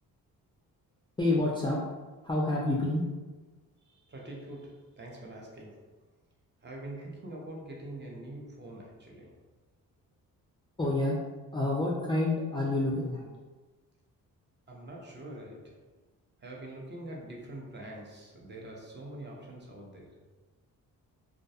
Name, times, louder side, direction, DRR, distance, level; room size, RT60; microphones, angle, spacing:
voice 1, 1.2-1.8 2.2-3.0 10.8-11.2 11.5-13.2, left 2 dB, 15° left, -5 dB, 0.3 m, -28 dB
voice 2, 3.8-5.9 6.6-9.4 14.7-15.9 16.4-20.3, right 1 dB, 30° right, -1 dB, 0.6 m, -44 dB
2.3 x 2.1 x 2.7 m, 1.3 s
cardioid pair, 70°, 37 cm